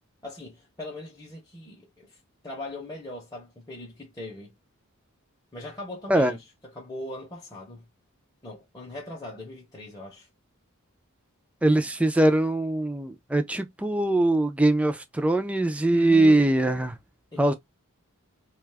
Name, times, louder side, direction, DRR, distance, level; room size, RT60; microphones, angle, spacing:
voice 1, 0.2-2.2 2.4-4.5 5.5-7.9 8.4-10.3 15.9-16.5 17.3-17.5, left 1 dB, 15° left, 0.7 m, -40 dB
voice 2, 11.6-16.9 17.4-17.5, right 1 dB, 5° right, 0.3 m, -22 dB
2.4 x 2.3 x 3.2 m
head